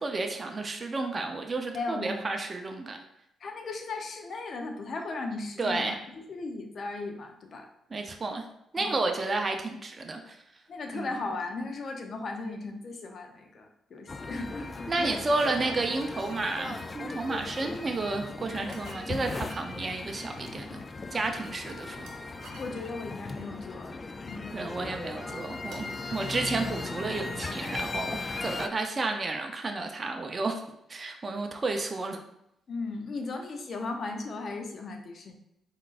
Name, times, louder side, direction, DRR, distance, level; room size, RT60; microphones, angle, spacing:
voice 1, 0.0-3.0 5.6-6.0 7.9-8.4 8.7-10.4 10.9-11.1 14.9-20.8 21.1-22.1 24.5-30.6 30.9-32.2, right 3 dB, 35° right, 4 dB, 0.6 m, -31 dB
voice 2, 1.7-2.4 3.4-7.7 8.8-9.0 10.7-15.2 22.6-23.9 24.3-24.6 32.7-35.4, left 3 dB, 55° left, 4 dB, 0.7 m, -37 dB
sound 1, 14.1-28.7, left 3 dB, 35° left, 0.3 m, -38 dB
sound 2, 16.2-16.7 18.7-19.7 22.1-23.5 25.7-27.0, right 4 dB, 80° right, 0.7 m, -51 dB
4.4 x 3.7 x 2.4 m, 0.79 s
supercardioid pair, 60°, 0 cm